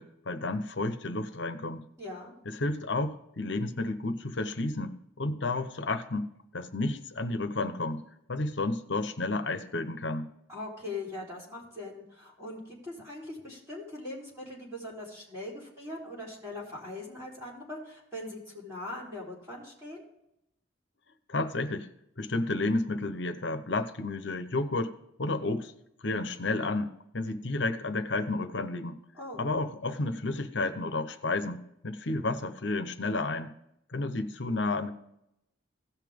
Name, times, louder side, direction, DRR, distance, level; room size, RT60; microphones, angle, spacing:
voice 1, 0.0-1.8 2.5-8.0 8.3-10.3 21.3-21.9 22.2-25.7 26.0-29.0 29.4-33.5 33.9-34.9, left 2 dB, 65° left, 10 dB, 0.9 m, -31 dB
voice 2, 2.0-2.3 10.5-20.0 29.1-29.4, left 2 dB, 15° right, -7 dB, 4.0 m, -41 dB
16.5 x 5.7 x 3.6 m, 0.81 s
head